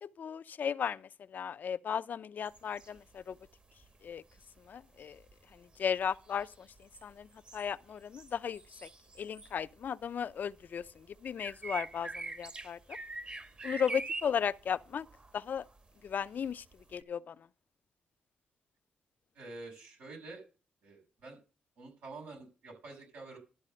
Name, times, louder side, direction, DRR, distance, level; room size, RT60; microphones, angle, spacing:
voice 1, 0.0-3.4 4.0-4.2 4.7-5.2 5.5-8.9 9.2-12.8 13.6-15.1 15.3-15.6 16.0-16.6 16.9-17.4, left 7 dB, 65° left, 0.5 m, -36 dB
sound 1, 2.4-3.5 3.7-10.0 10.3-17.0, right 3 dB, 35° right, 1.3 m, -44 dB
voice 2, 19.3-20.4 20.8-21.4 21.8-23.4, right 3 dB, 85° right, 6.1 m, -48 dB
12.5 x 4.1 x 7.6 m
cardioid pair, 60°, 3 cm